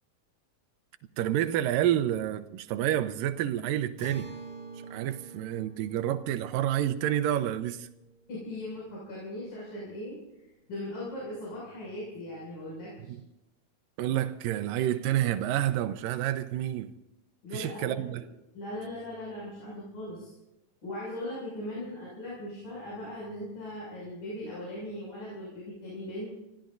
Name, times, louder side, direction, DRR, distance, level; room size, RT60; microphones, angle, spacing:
voice 1, 1.2-4.3 4.9-7.9 13.1-13.2 14.0-16.9 17.5-18.2, right 12 dB, 90° right, 2.4 m, -29 dB
Acoustic guitar, 4.0-9.5, right 3 dB, 20° right, 2.0 m, -47 dB
voice 2, 8.3-10.2 10.7-13.1 17.4-18.2 18.5-20.3 20.8-26.3, left 1 dB, 80° left, 8.2 m, -39 dB
27.0 x 16.5 x 2.6 m
omnidirectional pair, 3.9 m